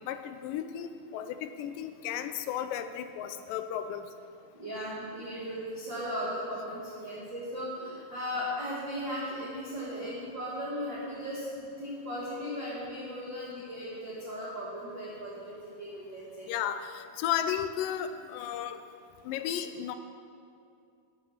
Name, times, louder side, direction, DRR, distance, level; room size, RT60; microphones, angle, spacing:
voice 1, 0.1-4.0 16.5-18.8 19.3-20.0, left 10 dB, 80° left, 9 dB, 2.0 m, -34 dB
voice 2, 4.5-16.5, equal, 50° right, -7 dB, 1.4 m, -37 dB
9.5 x 8.8 x 5.7 m, 2.5 s
omnidirectional pair, 4.2 m